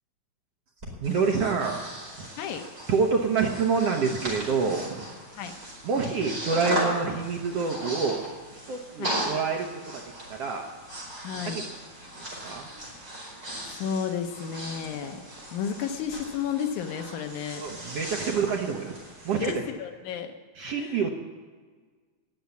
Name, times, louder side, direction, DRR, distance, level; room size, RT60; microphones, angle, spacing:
Breathing, 0.8-19.5, right 1 dB, 25° right, 5.3 m, -37 dB
voice 1, 1.0-1.9 2.2-2.3 2.9-5.1 5.8-8.3 8.7-9.7 9.9-10.0 10.3-10.7 11.5-11.6 12.4-12.7 17.6-18.9 19.3-19.5 20.6-21.1, right 5 dB, 60° right, 1 dB, 2.0 m, -27 dB
voice 2, 11.2-11.7 13.6-15.2 15.5-17.6 19.4-20.3 20.7-21.1, left 7 dB, 85° left, 6 dB, 2.4 m, -32 dB
20.5 x 7.3 x 8.2 m, 1.5 s
omnidirectional pair, 3.4 m